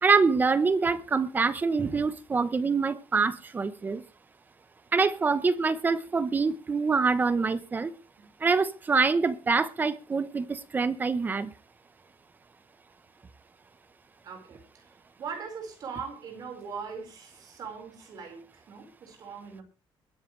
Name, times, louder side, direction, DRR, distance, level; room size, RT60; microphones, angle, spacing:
voice 1, 0.0-4.0 4.9-7.9 8.4-11.5, right 4 dB, 20° right, 0.9 m, -25 dB
voice 2, 14.2-19.6, right 6 dB, 45° right, 4.8 m, -41 dB
22.0 x 10.5 x 3.3 m
cardioid pair, 175°, 9 cm